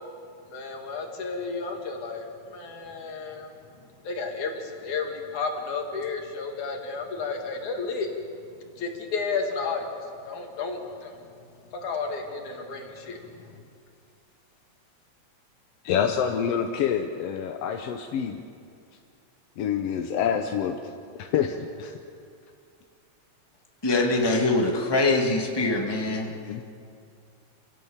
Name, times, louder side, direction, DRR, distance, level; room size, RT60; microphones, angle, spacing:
voice 1, 0.5-3.5 4.1-8.1 8.8-9.8 10.3-11.1 11.8-13.5, left 4 dB, 80° left, 2 dB, 3.6 m, -32 dB
voice 2, 15.8-18.4 19.6-20.9 21.2-22.0 26.5-26.6, left 8 dB, 65° left, 5 dB, 1.8 m, -27 dB
voice 3, 23.8-26.3, left 2 dB, 10° left, 0 dB, 1.9 m, -23 dB
27.5 x 17.0 x 7.3 m, 2.3 s
omnidirectional pair, 3.4 m